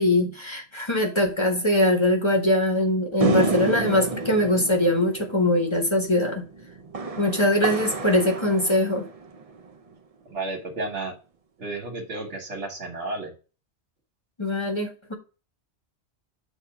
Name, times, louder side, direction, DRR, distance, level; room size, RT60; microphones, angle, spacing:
voice 1, 0.0-6.4 7.2-9.1 14.4-15.1, left 1 dB, 25° left, 1.1 m, -22 dB
sound 1, 3.2-9.7, right 3 dB, 35° right, 0.7 m, -30 dB
voice 2, 10.3-11.1 11.6-13.3, right 2 dB, 85° right, 1.9 m, -32 dB
7.8 x 2.7 x 5.8 m
omnidirectional pair, 1.2 m